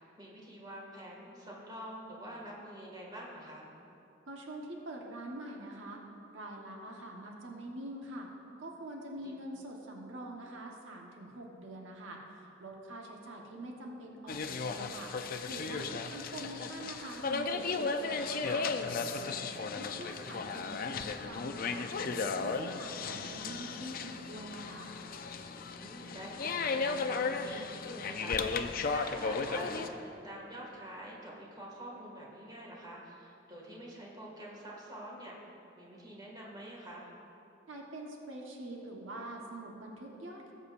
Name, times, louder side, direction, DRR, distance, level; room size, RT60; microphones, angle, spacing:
voice 1, 0.0-3.7 9.2-9.4 16.0-16.1 25.7-35.4 35.8-37.1, right 1 dB, 20° right, -4 dB, 2.0 m, -47 dB
voice 2, 4.3-6.0 6.3-8.3 8.6-15.1 15.5-18.6 19.1-21.9 22.2-24.9 37.7-40.5, right 1 dB, 85° right, -1 dB, 1.2 m, -45 dB
sound 1, 14.3-29.9, left 4 dB, 50° left, 0.5 m, -35 dB
19.0 x 8.1 x 2.6 m, 2.8 s
head